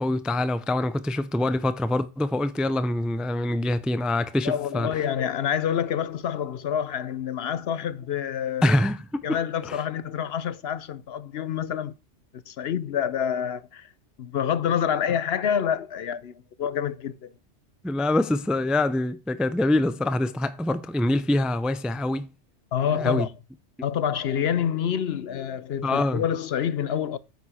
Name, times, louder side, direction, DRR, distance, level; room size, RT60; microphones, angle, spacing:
voice 1, 0.0-4.9 8.6-9.4 9.6-9.8 17.8-22.3 22.9-23.3 25.8-26.2, left 1 dB, ahead, 0.4 m, -25 dB
voice 2, 4.4-8.7 9.2-11.9 12.5-13.9 14.2-17.3 22.7-23.3 23.8-27.2, left 8 dB, 65° left, 0.9 m, -27 dB
9.3 x 6.8 x 4.3 m
omnidirectional pair, 1.2 m